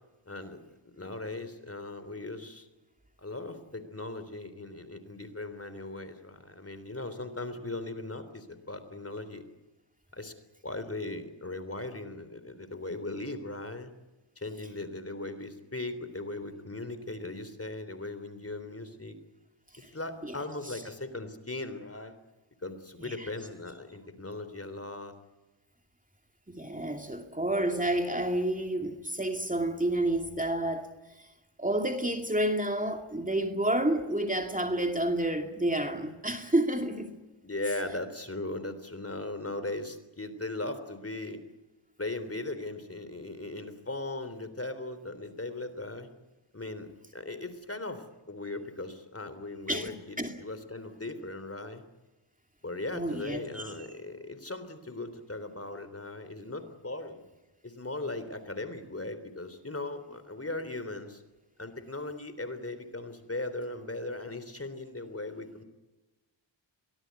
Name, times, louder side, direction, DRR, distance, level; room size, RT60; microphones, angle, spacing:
voice 1, 0.3-0.6 0.9-2.7 3.2-9.4 10.1-10.3 10.6-13.9 14.4-19.2 19.9-22.2 22.6-25.1 37.4-41.4 42.0-46.1 46.5-51.8 52.6-57.2 57.6-61.2 61.6-65.6, left 2 dB, 30° left, 11 dB, 3.6 m, -38 dB
voice 2, 26.5-31.3 31.6-37.1 49.7-50.4 52.9-53.6, right 1 dB, 15° right, 5 dB, 2.6 m, -30 dB
23.5 x 19.0 x 9.6 m, 1.1 s
cardioid pair, 50°, 47 cm